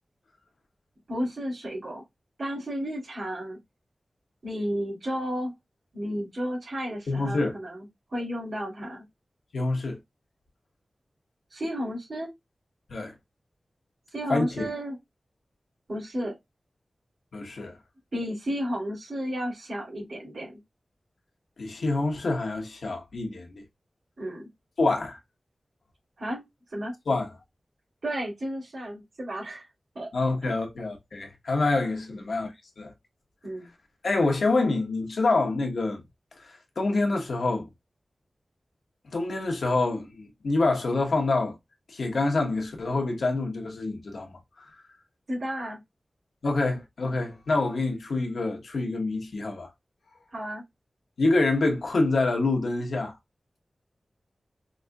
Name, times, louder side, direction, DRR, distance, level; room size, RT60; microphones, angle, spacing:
voice 1, 1.1-2.0 2.4-3.6 4.4-5.5 5.9-9.0 11.5-12.3 14.1-15.0 15.9-16.3 18.1-20.6 24.2-24.5 26.2-26.9 28.0-29.7 29.9-30.1 30.4-30.5 32.1-32.3 33.4-33.7 45.3-45.8 46.7-46.8 50.3-50.6, equal, 70° right, 2.7 m, -33 dB
voice 2, 7.1-7.5 9.5-10.0 12.9-13.1 14.3-14.6 17.3-17.8 21.6-23.6 24.8-25.2 27.1-27.3 30.1-32.5 32.8-32.9 34.0-36.0 36.4-37.7 39.1-41.5 41.9-44.7 46.4-49.7 51.2-53.1, left 2 dB, 90° left, 1.1 m, -26 dB
5.2 x 2.6 x 2.2 m
wide cardioid pair, 100°, 0 cm